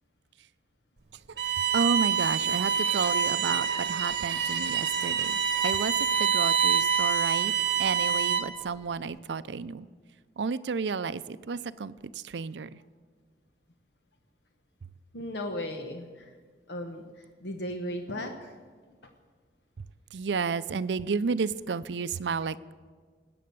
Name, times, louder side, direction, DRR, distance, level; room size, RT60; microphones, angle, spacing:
Bowed string instrument, 1.4-8.6, right 7 dB, 65° right, 1.2 m, -26 dB
voice 1, 1.7-5.9 6.2-7.5 7.8-9.9 10.4-11.9 12.2-12.8 20.1-22.7, right 5 dB, 85° right, 15 dB, 0.5 m, -31 dB
voice 2, 15.1-16.4 16.7-18.6, left 1 dB, 80° left, 5 dB, 1.1 m, -36 dB
19.0 x 8.6 x 6.9 m, 1.5 s
head